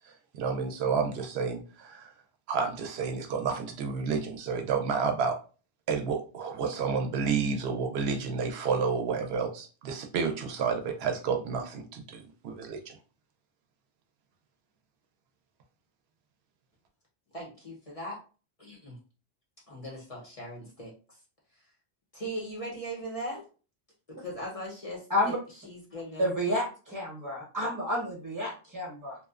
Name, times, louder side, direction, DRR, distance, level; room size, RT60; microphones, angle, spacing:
voice 1, 0.3-2.1 2.5-5.3 5.9-12.9, right 5 dB, 80° right, 3 dB, 0.8 m, -30 dB
voice 2, 17.3-18.2 18.6-19.0 19.7-20.9 22.1-23.4 24.2-25.4 25.6-26.3, equal, 40° left, -4 dB, 0.7 m, -39 dB
voice 3, 26.2-29.2, equal, 20° right, -2 dB, 0.9 m, -30 dB
2.6 x 2.1 x 2.3 m, 0.36 s
omnidirectional pair, 1.1 m